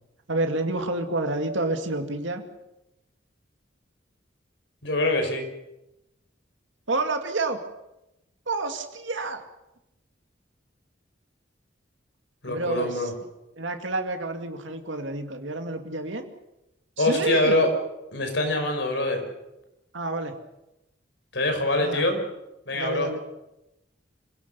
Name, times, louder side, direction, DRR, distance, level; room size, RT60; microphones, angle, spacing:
voice 1, 0.3-2.4 6.9-7.6 8.5-9.4 12.5-13.1 13.6-16.3 17.0-17.6 19.9-20.4 21.8-22.0 22.7-23.2, right 2 dB, 80° right, 5 dB, 2.3 m, -29 dB
voice 2, 4.8-5.5 12.4-13.1 17.0-17.7 18.1-19.2 21.3-22.2 22.7-23.1, left 2 dB, 70° left, 5 dB, 5.5 m, -24 dB
26.5 x 17.5 x 6.9 m, 0.91 s
head